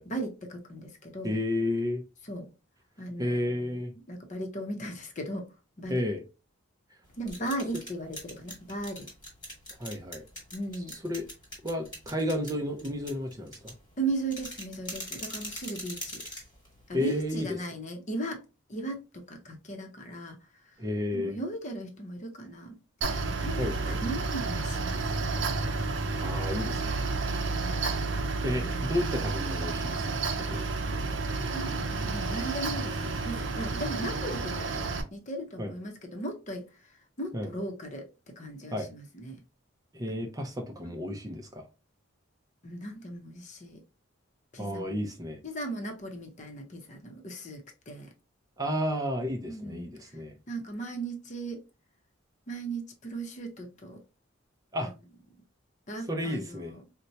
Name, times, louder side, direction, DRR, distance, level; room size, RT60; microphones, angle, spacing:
voice 1, 0.0-1.4 2.3-2.5 3.0-3.7 4.1-5.5 5.8-6.0 7.2-9.1 10.5-11.0 14.0-16.2 16.9-18.4 18.7-20.4 21.1-22.8 23.4-25.3 27.5-27.9 28.6-28.8 31.4-36.7 37.2-38.1 38.4-39.4 40.1-40.2 42.6-43.8 44.5-45.1 45.4-48.1 49.5-50.2 50.5-51.6 52.5-54.0 54.8-54.9 55.9-56.8, right 2 dB, 35° left, 0.7 m, -37 dB
voice 2, 1.2-2.0 3.2-3.9 5.9-6.2 9.8-10.2 11.0-11.3 11.6-13.7 16.9-17.6 20.8-21.4 23.6-24.0 26.2-27.0 28.4-30.6 35.6-35.7 37.3-37.5 38.7-38.9 39.9-41.6 44.6-45.4 48.6-50.3 54.7-54.9 56.1-56.7, left 1 dB, 20° right, 0.5 m, -32 dB
sound 1, 7.0-17.4, left 1 dB, 20° left, 1.4 m, -43 dB
Mechanical fan, 23.0-35.0, right 3 dB, 65° right, 0.6 m, -31 dB
4.2 x 2.1 x 2.7 m
head